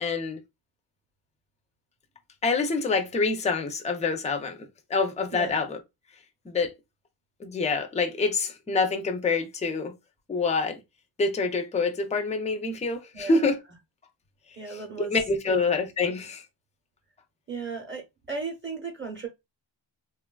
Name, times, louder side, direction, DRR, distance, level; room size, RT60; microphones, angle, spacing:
voice 1, 0.0-0.4 2.4-4.6 4.9-5.8 6.5-6.7 7.4-9.9 10.3-10.8 11.2-13.6 14.7-16.4, left 4 dB, 15° left, 0.4 m, -26 dB
voice 2, 13.1-13.5 14.5-15.1 15.5-15.6 17.5-19.3, right 5 dB, 25° right, 0.7 m, -35 dB
3.1 x 2.2 x 2.2 m
cardioid pair, 120°, 48 cm